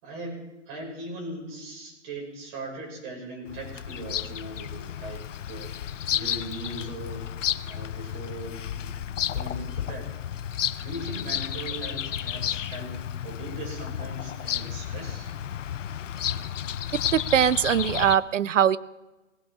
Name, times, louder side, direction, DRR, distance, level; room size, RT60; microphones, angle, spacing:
voice 1, 0.0-5.8 6.1-7.3 7.6-10.1 10.8-13.0 13.2-15.3, right 1 dB, 40° right, -1 dB, 6.3 m, -39 dB
Bird vocalization bird call bird song, 3.5-18.2, left 10 dB, 85° left, 0.7 m, -32 dB
voice 2, 17.1-18.8, right 9 dB, 85° right, 19 dB, 0.7 m, -21 dB
17.5 x 15.5 x 3.7 m, 1.1 s
hypercardioid pair, 135°, 36 cm